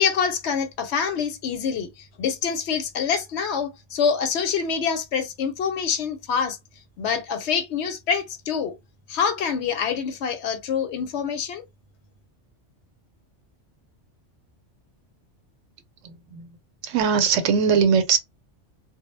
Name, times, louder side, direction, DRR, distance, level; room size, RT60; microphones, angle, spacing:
voice 1, 0.0-6.6 7.0-8.7 9.1-11.6, left 6 dB, 70° left, 0.8 m, -26 dB
voice 2, 16.0-16.5 16.8-18.2, right 6 dB, 85° right, 1.0 m, -21 dB
2.2 x 2.0 x 3.0 m
omnidirectional pair, 1.2 m